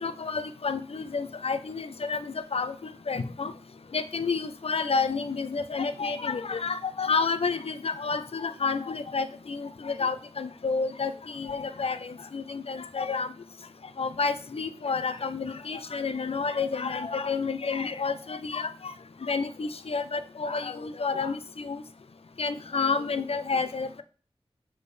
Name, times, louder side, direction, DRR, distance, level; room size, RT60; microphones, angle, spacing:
voice 1, 0.0-3.5 3.9-13.3 14.0-18.9 19.2-21.8 22.4-24.0, left 4 dB, 70° left, 12 dB, 0.6 m, -30 dB
6.9 x 6.6 x 3.3 m, 0.37 s
wide cardioid pair, 55°, 10 cm